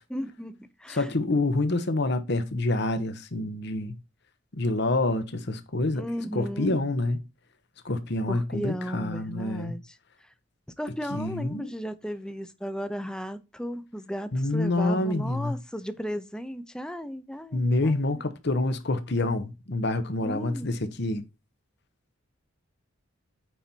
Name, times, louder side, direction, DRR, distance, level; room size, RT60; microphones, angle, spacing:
voice 1, 0.1-1.1 5.9-6.8 8.3-10.3 10.8-18.2 20.2-20.8, equal, 5° left, 0.6 m, -35 dB
voice 2, 0.9-4.0 4.5-6.1 6.3-7.2 7.8-9.7 11.1-11.7 14.3-15.5 17.5-21.2, left 2 dB, 55° left, 0.9 m, -27 dB
9.2 x 4.2 x 4.4 m
head